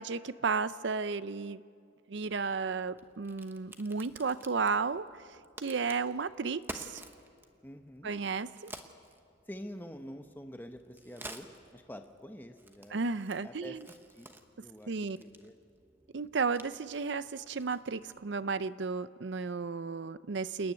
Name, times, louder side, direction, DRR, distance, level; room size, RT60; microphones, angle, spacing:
voice 1, 0.0-1.6 2.1-5.2 5.6-7.0 8.0-8.7 12.9-13.9 14.9-15.2 16.1-20.7, right 4 dB, 65° right, 15 dB, 0.6 m, -33 dB
Crack, 2.2-18.3, right 2 dB, 10° right, 1.0 m, -52 dB
voice 2, 7.6-8.1 9.5-11.5 11.7-13.0 13.4-14.3 14.6-15.5, equal, 10° left, 6 dB, 0.8 m, -47 dB
28.5 x 10.5 x 9.4 m, 2.3 s
head